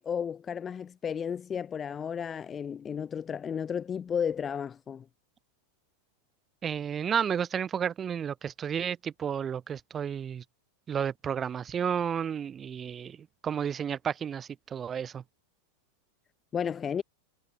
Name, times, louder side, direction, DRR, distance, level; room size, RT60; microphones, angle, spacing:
voice 1, 0.0-5.0 16.5-17.0, left 7 dB, 20° left, 1.2 m, -33 dB
voice 2, 6.6-10.4 10.9-15.2, right 8 dB, 25° right, 4.6 m, -32 dB
figure-of-eight pair, 90°, 0 cm